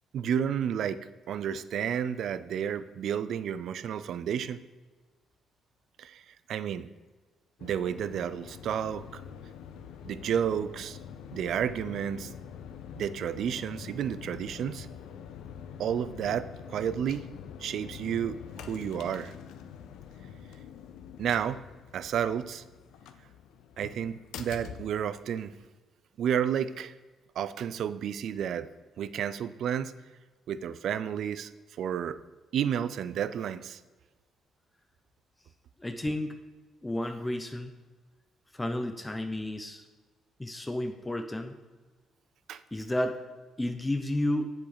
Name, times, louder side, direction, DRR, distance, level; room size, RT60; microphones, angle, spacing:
voice 1, 0.1-4.6 6.0-6.2 6.5-6.9 7.6-9.2 10.0-11.0 11.3-12.3 12.9-14.9 15.8-17.3 17.6-19.3 21.2-21.6 21.9-22.6 23.8-25.5 26.2-26.9 27.4-28.7 29.0-29.9 30.5-31.5 31.8-32.2 32.5-33.8 42.5-42.6, right 8 dB, 70° right, 15 dB, 0.4 m, -31 dB
sound 1, 7.6-25.7, left 8 dB, 90° left, 0.6 m, -45 dB
voice 2, 35.8-36.4 36.8-37.7 38.5-39.8 40.4-41.6 42.7-43.2 43.6-44.5, left 1 dB, 15° left, 6 dB, 0.7 m, -31 dB
7.8 x 7.2 x 4.9 m, 1.3 s
cardioid pair, 90°, 0 cm